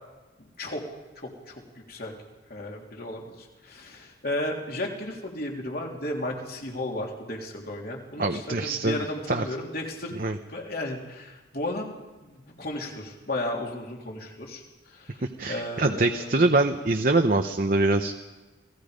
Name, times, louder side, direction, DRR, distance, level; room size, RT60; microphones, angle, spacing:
voice 1, 0.4-0.8 1.2-2.1 2.5-10.1 10.5-11.9 12.2-16.5, left 1 dB, 50° left, 0 dB, 3.5 m, -34 dB
voice 2, 8.2-9.0 9.3-9.4 10.2-10.4 15.4-18.1, right 2 dB, 45° right, 5 dB, 0.9 m, -23 dB
29.0 x 18.5 x 5.2 m, 1.2 s
head